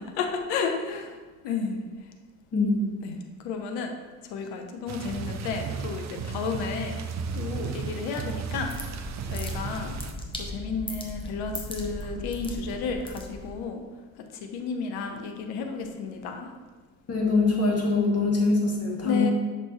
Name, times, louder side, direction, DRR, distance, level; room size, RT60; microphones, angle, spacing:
voice 1, 0.2-1.1 1.4-1.8 3.0-3.9 4.3-7.0 7.3-8.7 9.3-10.0 10.4-13.8 14.4-16.5 19.0-19.3, left 5 dB, 65° left, 4 dB, 0.8 m, -32 dB
voice 2, 2.5-2.9 17.1-19.3, left 3 dB, 35° left, -1 dB, 1.7 m, -23 dB
sound 1, 4.9-10.1, right 5 dB, 40° right, 0.6 m, -34 dB
sound 2, 8.2-13.7, left 1 dB, 10° left, 1.2 m, -38 dB
6.2 x 5.2 x 3.1 m, 1.3 s
hypercardioid pair, 50°, 41 cm